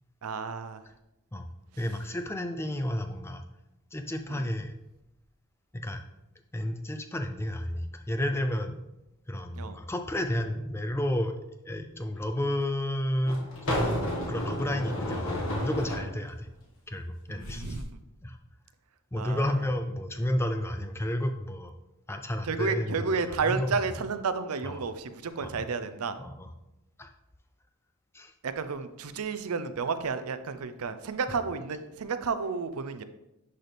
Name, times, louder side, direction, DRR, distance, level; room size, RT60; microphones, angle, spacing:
voice 1, 0.2-0.8 4.3-4.5 9.5-9.8 17.3-18.0 19.2-19.6 22.4-26.2 28.4-33.0, right 5 dB, 85° right, 11 dB, 0.5 m, -32 dB
voice 2, 1.8-3.4 3.9-4.8 5.7-6.0 6.5-8.8 9.3-11.3 11.6-16.5 16.9-17.8 18.2-18.4 19.1-21.7 22.1-23.8 24.6-24.8 25.4-25.6 26.2-26.5 27.0-27.1 28.1-28.3, left 1 dB, 10° left, 6 dB, 0.5 m, -31 dB
sound 1, 12.1-12.2 13.2-16.1 17.4-17.8, left 1 dB, 65° left, 1.6 m, -32 dB
10.5 x 4.1 x 3.4 m, 0.92 s
head